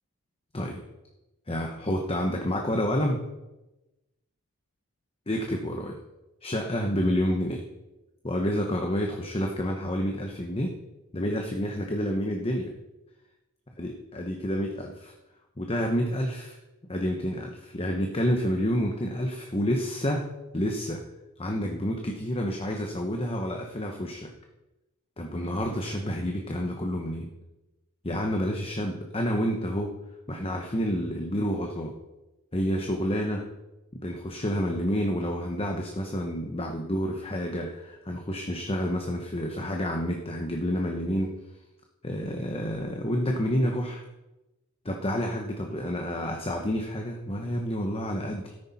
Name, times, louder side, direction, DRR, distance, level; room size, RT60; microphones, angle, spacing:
voice 1, 1.5-3.2 5.3-6.0 6.4-7.6 8.2-10.8 11.1-12.7 13.8-15.1 15.6-16.6 16.9-20.3 20.5-21.0 21.4-24.3 25.2-27.3 28.0-30.0 30.3-31.9 32.5-33.5 33.9-41.3 42.0-44.0 44.8-48.7, equal, 25° left, 2 dB, 1.0 m, -29 dB
13.5 x 10.0 x 4.2 m, 1.0 s
head